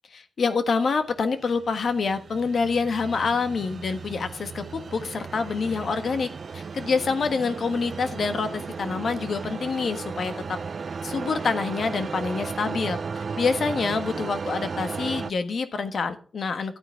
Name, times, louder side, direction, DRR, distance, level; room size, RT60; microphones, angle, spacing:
voice 1, 0.1-6.3 6.5-10.6 11.0-16.8, left 4 dB, 70° left, 9 dB, 1.3 m, -27 dB
sound 1, 1.2-15.3, right 5 dB, 60° right, 0.5 m, -35 dB
12.0 x 9.1 x 3.5 m, 0.39 s
cardioid pair, 75°, 0 cm